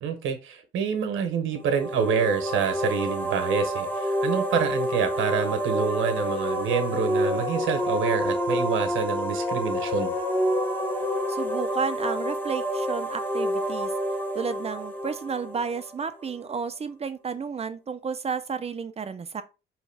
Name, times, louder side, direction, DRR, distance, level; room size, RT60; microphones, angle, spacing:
voice 1, 0.0-10.1, right 6 dB, 80° right, 1.1 m, -27 dB
sound 1, 1.6-16.3, equal, 10° left, 1.2 m, -28 dB
voice 2, 11.3-13.9 14.3-19.4, right 5 dB, 30° right, 0.6 m, -32 dB
4.7 x 3.1 x 3.4 m
cardioid pair, 90°, 20 cm